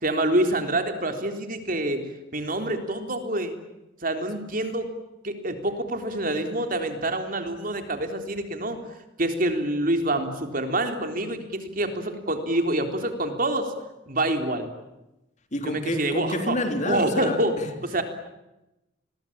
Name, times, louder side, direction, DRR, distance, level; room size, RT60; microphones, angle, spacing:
voice 1, 0.0-3.6 4.0-4.9 5.2-8.8 9.2-13.7 14.1-14.7 15.6-16.6 16.8-17.6 17.8-18.0, right 1 dB, 45° right, 6 dB, 3.7 m, -26 dB
voice 2, 15.5-17.4, left 1 dB, 40° left, 6 dB, 3.6 m, -27 dB
30.0 x 22.5 x 8.8 m, 0.95 s
head